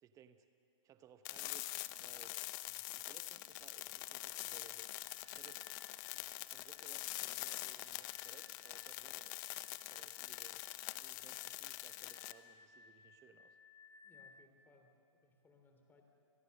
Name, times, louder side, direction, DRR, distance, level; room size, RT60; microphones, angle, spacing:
voice 1, 0.0-0.5 0.8-2.4 2.7-4.9 5.3-5.7 6.5-9.3 9.9-10.7 11.0-13.6, right 8 dB, 20° right, 10 dB, 0.9 m, -63 dB
sound 1, 1.2-12.3, left 18 dB, 35° left, 0.8 m, -45 dB
sound 2, 4.3-14.5, left 5 dB, 85° left, 1.2 m, -64 dB
voice 2, 14.0-16.0, left 3 dB, 10° left, 4 dB, 3.0 m, -68 dB
30.0 x 21.0 x 6.6 m, 2.4 s
hypercardioid pair, 125°, 17 cm